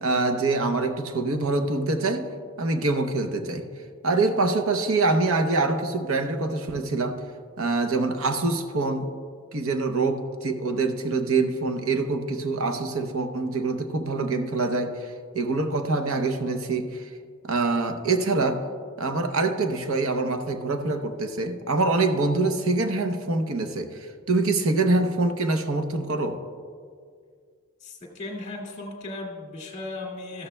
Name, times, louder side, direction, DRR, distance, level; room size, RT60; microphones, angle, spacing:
voice 1, 0.0-2.3 2.6-3.6 4.0-7.2 7.6-9.1 9.5-17.1 17.4-18.6 19.0-26.4, right 3 dB, 65° right, 7 dB, 0.7 m, -25 dB
voice 2, 27.8-30.5, left 2 dB, 30° left, -3 dB, 2.0 m, -36 dB
14.0 x 13.0 x 2.2 m, 2.1 s
head